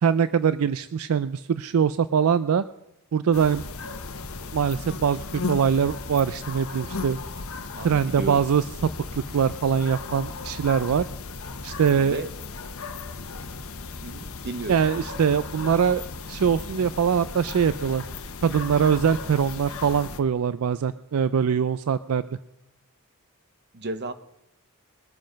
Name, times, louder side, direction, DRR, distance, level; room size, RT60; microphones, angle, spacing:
voice 1, 0.0-2.6 3.1-3.6 4.5-7.2 7.8-8.9 9.3-11.1 11.6-12.2 14.7-16.0 16.3-18.0 18.4-22.2, right 7 dB, 75° right, 14 dB, 0.4 m, -23 dB
sound 1, 3.3-20.2, left 3 dB, 65° left, 1.0 m, -36 dB
voice 2, 7.8-8.4 12.0-12.3 14.0-14.7 23.7-24.1, right 2 dB, 50° right, 11 dB, 0.9 m, -33 dB
21.5 x 7.6 x 5.2 m, 0.85 s
head